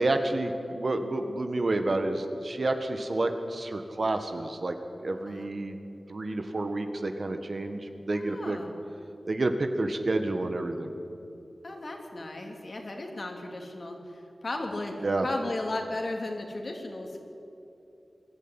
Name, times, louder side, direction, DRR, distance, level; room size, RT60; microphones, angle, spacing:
voice 1, 0.0-4.7 5.0-5.8 6.1-8.6 9.3-10.9 15.0-15.3, right 2 dB, 55° right, 7 dB, 1.7 m, -29 dB
voice 2, 8.1-8.8 11.6-17.2, left 2 dB, 50° left, 2 dB, 3.1 m, -35 dB
22.5 x 13.0 x 10.0 m, 2.8 s
wide cardioid pair, 80°, 0 cm